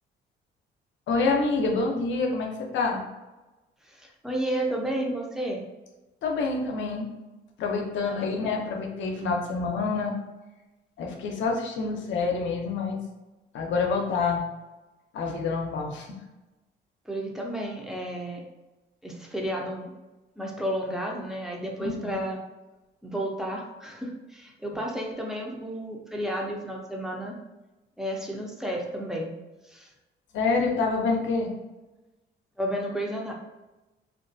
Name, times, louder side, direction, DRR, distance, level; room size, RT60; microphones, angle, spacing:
voice 1, 1.1-3.0 6.2-7.1 7.6-10.1 11.0-13.0 13.5-14.5 15.1-16.1 21.8-22.2 30.3-31.5, left 4 dB, 70° left, 1 dB, 0.6 m, -27 dB
voice 2, 3.8-5.7 8.0-8.6 17.1-18.4 19.0-19.9 20.4-22.4 23.0-27.4 28.0-29.3 29.7-29.9 32.6-33.3, right 1 dB, ahead, -1 dB, 0.5 m, -32 dB
2.4 x 2.2 x 2.5 m, 1.1 s
cardioid pair, 90°, 20 cm